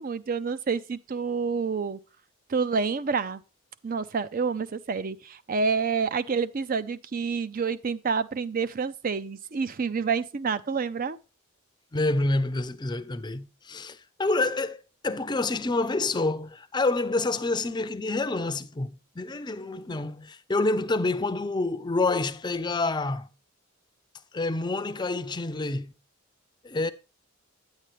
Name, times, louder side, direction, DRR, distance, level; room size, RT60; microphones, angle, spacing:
voice 1, 0.0-2.0 2.5-3.4 3.8-11.2, right 5 dB, 40° right, 0.5 m, -28 dB
voice 2, 11.9-23.3 24.3-25.9 26.6-26.9, left 2 dB, 20° left, 0.5 m, -28 dB
9.1 x 8.9 x 3.1 m
head